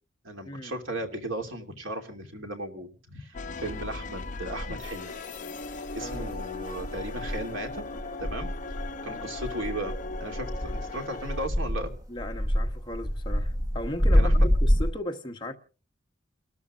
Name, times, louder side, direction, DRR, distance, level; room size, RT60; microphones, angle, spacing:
voice 1, 0.2-5.2 5.9-7.8 8.2-8.5 9.0-11.9 14.1-14.5, right 1 dB, 70° right, 2.7 m, -36 dB
sound 1, 3.3-11.5, left 3 dB, 40° left, 0.8 m, -38 dB
sound 2, 3.9-4.0 4.5-5.2 5.6-14.9, equal, 15° right, 1.4 m, -27 dB
voice 2, 6.0-6.4 9.0-9.4 12.1-15.5, left 1 dB, 20° left, 1.1 m, -37 dB
29.5 x 13.0 x 2.5 m
head